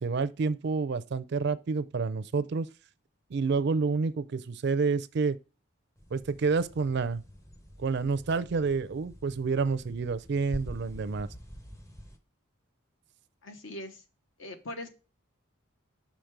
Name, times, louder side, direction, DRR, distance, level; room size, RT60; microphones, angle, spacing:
voice 1, 0.0-2.7 3.3-5.4 6.1-7.2 7.8-11.3, right 4 dB, 55° right, 0.4 m, -29 dB
sound 1, 6.0-12.2, equal, 15° left, 0.6 m, -46 dB
voice 2, 13.4-14.0 14.4-14.9, left 1 dB, 65° left, 1.0 m, -40 dB
5.9 x 5.1 x 4.6 m
head